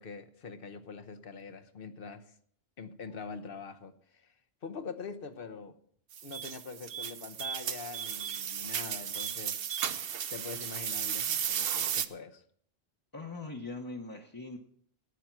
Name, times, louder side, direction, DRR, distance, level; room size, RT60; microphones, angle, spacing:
voice 1, 0.0-2.3 2.8-4.3 4.6-5.8 6.2-12.4, left 5 dB, 60° left, 1.1 m, -44 dB
sound 1, 6.1-12.1, right 8 dB, 65° right, 0.9 m, -34 dB
voice 2, 13.1-14.6, left 3 dB, 20° left, 1.0 m, -41 dB
13.0 x 9.3 x 6.0 m
omnidirectional pair, 1.1 m